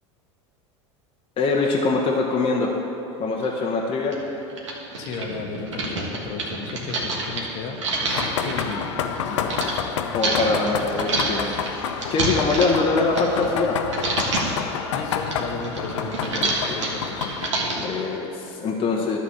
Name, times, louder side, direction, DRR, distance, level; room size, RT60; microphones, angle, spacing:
voice 1, 1.4-2.7 3.2-4.2 10.1-11.6 12.1-13.8 16.4-16.8 17.7-19.2, left 3 dB, 35° left, -1 dB, 1.0 m, -23 dB
sound 1, 3.4-3.5 4.1-4.2 4.5-9.7 10.2-13.7 13.9-14.6 15.0-18.0, right 2 dB, 90° right, 1.5 m, -28 dB
voice 2, 5.0-8.9 9.2-9.6 14.9-17.3, left 4 dB, 50° left, 2 dB, 1.2 m, -34 dB
sound 2, 8.1-17.5, left 7 dB, 80° left, 0.6 m, -29 dB
11.5 x 4.1 x 6.5 m, 2.9 s
hypercardioid pair, 100°, 15 cm